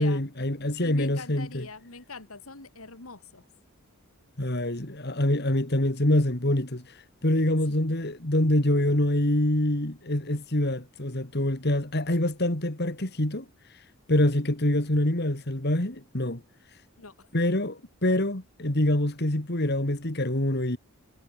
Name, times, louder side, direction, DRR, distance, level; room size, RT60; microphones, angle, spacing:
voice 1, 0.0-1.6 4.4-6.8 7.2-13.5 14.1-16.4 17.3-20.8, left 1 dB, 50° left, 2.6 m, -25 dB
voice 2, 0.8-3.5 14.3-14.4 17.0-17.3, left 3 dB, 80° left, 3.3 m, -43 dB
head